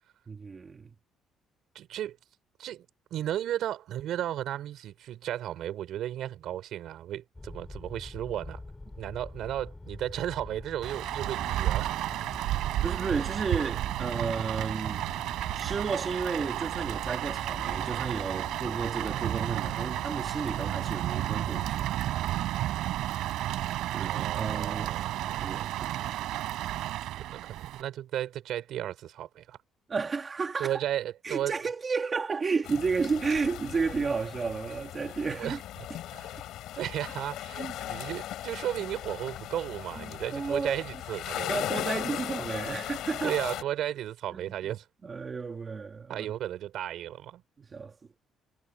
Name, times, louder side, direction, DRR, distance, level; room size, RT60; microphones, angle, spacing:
voice 1, 0.3-0.9 12.5-15.0 15.5-21.9 23.9-26.2 29.9-30.8 31.2-35.6 37.6-37.8 40.0-40.8 41.5-43.4 44.3-44.8 45.0-46.3 47.6-48.0, right 5 dB, 25° right, 2.4 m, -32 dB
voice 2, 1.8-2.2 2.6-2.9 3.1-8.6 9.0-11.9 24.0-25.7 27.3-29.6 30.6-31.6 35.4-35.6 36.1-36.4 36.7-41.5 43.2-44.9 46.1-47.4, right 12 dB, 65° right, 5.3 m, -34 dB
sound 1, 7.3-21.8, left 2 dB, 10° left, 3.6 m, -44 dB
Rain, 10.8-27.8, right 14 dB, 80° right, 4.8 m, -32 dB
sound 2, 32.6-43.6, left 13 dB, 70° left, 7.0 m, -38 dB
cardioid pair, 165°, 0 cm